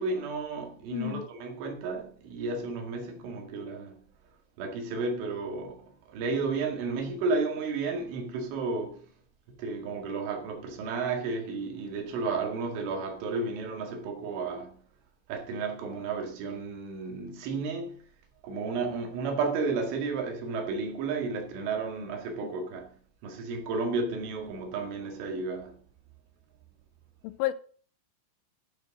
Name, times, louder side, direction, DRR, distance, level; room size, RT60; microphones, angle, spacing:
voice 1, 0.0-4.0 4.6-9.1 9.6-14.8 15.3-18.0 18.4-22.9 23.2-25.8, right 4 dB, 75° right, 4.5 m, -32 dB
voice 2, 0.9-1.3 22.4-22.6 27.2-27.5, left 16 dB, 85° left, 3.2 m, -31 dB
12.0 x 7.6 x 6.1 m
omnidirectional pair, 5.7 m